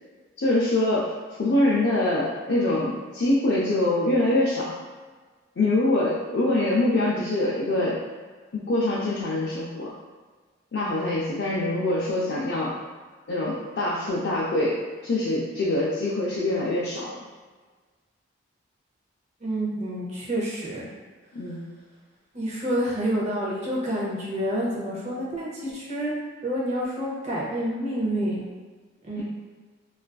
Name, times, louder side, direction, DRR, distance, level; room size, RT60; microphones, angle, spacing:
voice 1, 0.4-1.1 1.4-4.8 5.6-8.0 8.5-9.9 10.7-12.8 13.3-17.1 21.3-21.6, left 1 dB, 55° left, -7 dB, 0.4 m, -24 dB
voice 2, 19.4-20.9 22.3-26.1 26.4-28.4 29.0-29.2, equal, 35° right, -5 dB, 0.6 m, -28 dB
2.4 x 2.3 x 2.2 m, 1.4 s
head